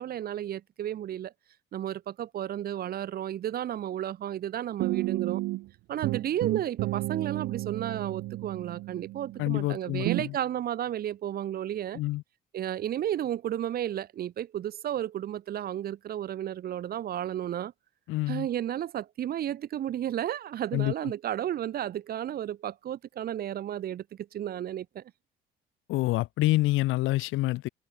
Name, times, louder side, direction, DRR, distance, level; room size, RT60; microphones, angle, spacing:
voice 1, 0.0-1.3 1.7-5.4 5.9-12.0 12.5-17.7 18.3-25.0, right 11 dB, 45° right, 1.0 m, -33 dB
sound 1, 4.8-5.7 6.0-9.6 10.0-10.3, right 19 dB, 75° right, 0.4 m, -32 dB
voice 2, 9.4-10.4 11.9-12.2 18.1-18.5 20.7-21.1 25.9-27.7, left 18 dB, 70° left, 0.4 m, -27 dB
cardioid pair, 165°, 21 cm